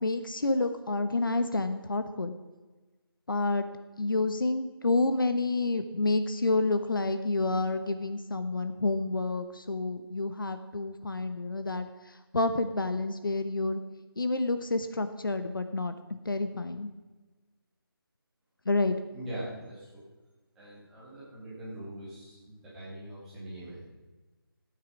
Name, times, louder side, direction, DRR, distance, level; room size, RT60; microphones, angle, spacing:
voice 1, 0.0-2.3 3.3-3.7 4.0-11.9 12.3-13.8 14.2-15.9 16.2-16.9 18.7-19.0, left 2 dB, 60° left, 9 dB, 1.1 m, -29 dB
voice 2, 19.1-20.0 20.6-23.8, right 1 dB, 5° right, -10 dB, 1.8 m, -42 dB
13.5 x 8.9 x 6.2 m, 1.2 s
figure-of-eight pair, 180°, 13 cm